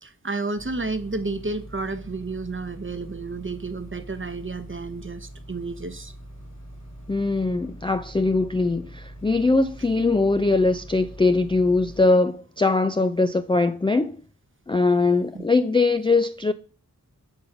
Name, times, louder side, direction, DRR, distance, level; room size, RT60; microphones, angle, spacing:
voice 1, 0.0-6.1 15.3-15.4, right 3 dB, 35° right, 0.8 m, -31 dB
sound 1, 0.6-12.0, right 1 dB, 50° left, 2.4 m, -43 dB
voice 2, 7.1-14.2 14.7-16.5, left 3 dB, 15° left, 0.3 m, -21 dB
8.0 x 3.9 x 5.8 m
wide cardioid pair, 45°, 35 cm